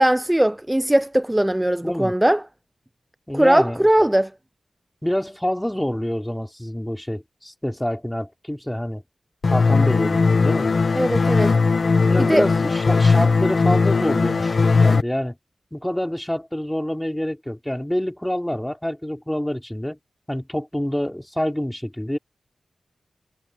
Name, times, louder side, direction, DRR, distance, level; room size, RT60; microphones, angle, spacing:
voice 1, 0.0-2.4 3.3-4.3 10.9-11.5 12.2-12.5, right 1 dB, 10° right, 0.5 m, -19 dB
voice 2, 1.8-2.1 3.3-3.9 5.0-9.0 9.5-10.7 12.0-15.4 15.7-20.0 20.3-22.2, left 1 dB, 5° left, 3.6 m, -26 dB
sound 1, 9.4-15.0, left 4 dB, 60° left, 1.1 m, -18 dB
wide cardioid pair, 70°, 0 cm